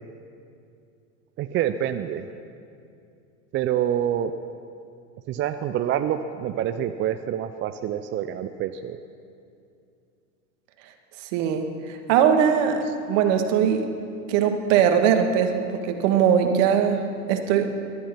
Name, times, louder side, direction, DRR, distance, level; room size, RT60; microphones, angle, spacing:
voice 1, 1.4-2.3 3.5-4.3 5.3-9.0, right 10 dB, 25° right, 9 dB, 0.5 m, -26 dB
voice 2, 11.3-13.9 14.3-17.0 17.3-17.7, right 8 dB, 55° right, 5 dB, 1.9 m, -21 dB
20.0 x 11.5 x 5.9 m, 2.5 s
hypercardioid pair, 95°, 44 cm